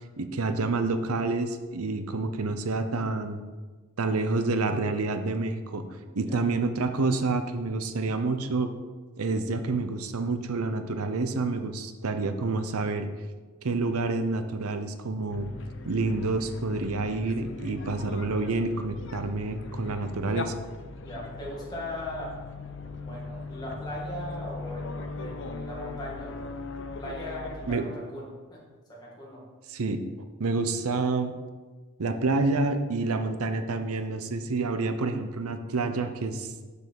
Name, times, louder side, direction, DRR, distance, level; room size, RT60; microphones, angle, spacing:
voice 1, 0.2-3.4 4.0-5.9 6.2-8.7 9.2-13.1 13.6-15.5 15.8-20.5 27.7-27.8 29.7-30.0 30.4-31.3 32.0-36.5, right 3 dB, 90° right, 8 dB, 0.7 m, -28 dB
voice 2, 6.0-6.4 21.0-22.3 22.8-26.3 27.0-28.6 28.9-29.4, left 1 dB, 20° left, -5 dB, 2.1 m, -39 dB
sound 1, 15.3-27.8, left 3 dB, 55° left, 0.6 m, -39 dB
6.2 x 5.4 x 6.9 m, 1.3 s
head